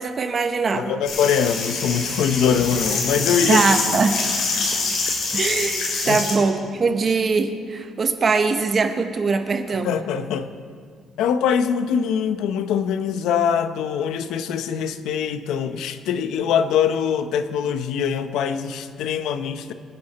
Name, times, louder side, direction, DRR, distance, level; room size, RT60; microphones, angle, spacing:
voice 1, 0.0-1.0 3.5-4.2 5.3-9.9, right 4 dB, 30° right, 7 dB, 1.0 m, -22 dB
voice 2, 0.7-3.7 4.6-4.7 6.0-6.2 9.8-10.5 11.2-19.7, left 7 dB, 80° left, 10 dB, 0.8 m, -23 dB
sound 1, 1.0-6.3, left 3 dB, 55° left, 3.8 m, -25 dB
sound 2, 2.6-6.9, equal, 10° right, 2.3 m, -39 dB
25.0 x 9.7 x 4.3 m, 2.1 s
cardioid pair, 160°, 0 cm